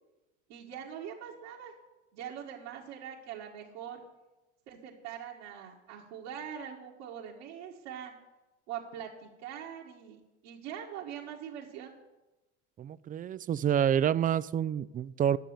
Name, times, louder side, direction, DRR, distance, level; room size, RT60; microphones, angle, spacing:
voice 1, 0.5-1.7 2.1-4.0 4.7-8.1 8.7-11.9, right 9 dB, 75° right, -5 dB, 1.8 m, -43 dB
voice 2, 12.8-15.4, right 9 dB, 25° right, 18 dB, 0.4 m, -28 dB
10.5 x 6.7 x 9.0 m, 1.1 s
hypercardioid pair, 80°, 33 cm